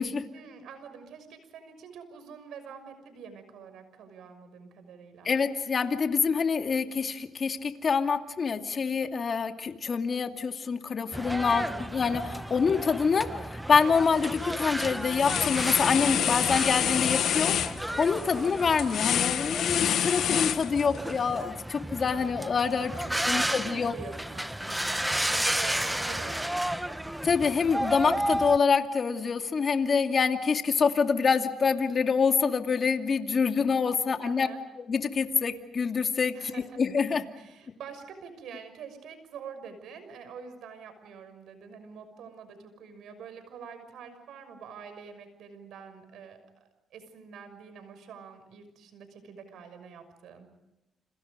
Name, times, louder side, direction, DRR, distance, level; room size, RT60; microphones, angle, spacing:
voice 1, 0.3-5.4 11.5-11.9 23.0-27.1 34.2-34.6 36.3-36.8 37.4-50.5, right 6 dB, 80° right, 9 dB, 6.2 m, -46 dB
voice 2, 5.2-17.6 18.0-22.9 23.3-23.9 27.2-34.5 34.9-37.3, left 5 dB, 45° left, 5 dB, 2.5 m, -26 dB
sound 1, 11.1-28.6, right 1 dB, 5° right, 1.1 m, -33 dB
sound 2, 13.9-14.3 14.6-21.1, left 9 dB, 70° left, 1.4 m, -28 dB
29.5 x 27.5 x 5.2 m, 0.98 s
cardioid pair, 90°, 0 cm